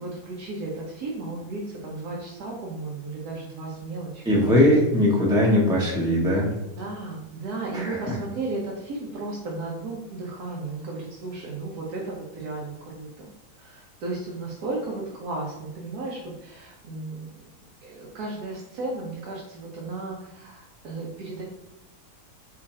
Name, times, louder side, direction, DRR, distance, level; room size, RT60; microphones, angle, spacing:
voice 1, 0.0-4.7 6.8-17.3 17.8-21.4, right 3 dB, 80° right, -3 dB, 1.4 m, -34 dB
voice 2, 4.3-6.5 7.7-8.0, left 1 dB, 5° right, -4 dB, 0.6 m, -20 dB
5.0 x 2.5 x 4.1 m, 1.0 s
omnidirectional pair, 1.6 m